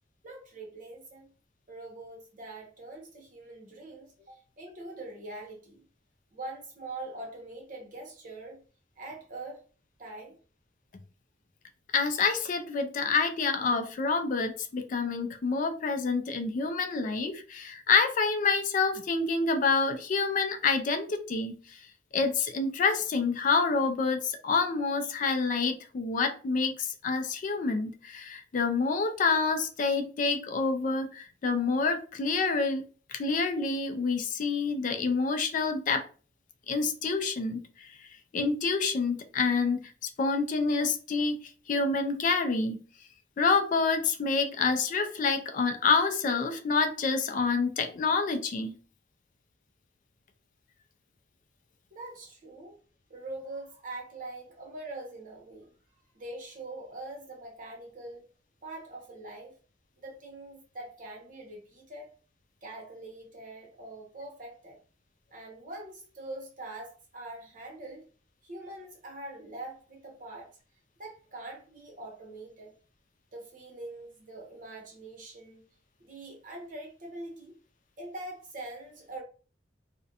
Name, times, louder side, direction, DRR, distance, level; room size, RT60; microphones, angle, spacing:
voice 1, 0.2-1.3 1.7-5.8 6.3-8.6 9.0-9.6 10.0-10.4 51.9-52.8 53.1-55.7 56.1-58.3 58.6-59.5 60.0-62.1 62.6-64.8 65.3-68.0 68.4-70.5 71.0-72.7 73.3-75.6 76.0-77.6 78.0-79.2, right 2 dB, 45° right, 0.8 m, -43 dB
voice 2, 11.9-21.8 22.1-32.8 33.1-36.0 36.7-37.6 38.3-41.4 41.7-42.8 43.4-48.7, left 4 dB, 45° left, 0.3 m, -27 dB
2.4 x 2.1 x 2.7 m
head